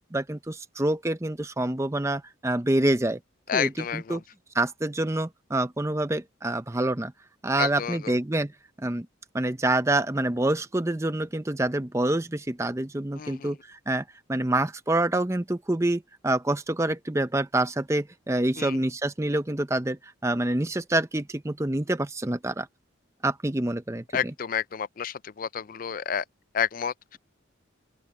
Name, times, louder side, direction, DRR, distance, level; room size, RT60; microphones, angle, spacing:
voice 1, 0.1-3.2 3.5-4.2 4.5-7.1 7.4-8.5 8.8-9.1 9.3-22.7 23.2-24.0, right 1 dB, 15° right, 0.6 m, -27 dB
voice 2, 3.5-4.2 7.6-8.2 13.1-13.6 18.6-18.8 24.1-26.2 26.5-27.2, left 8 dB, 45° left, 0.4 m, -30 dB
open air
head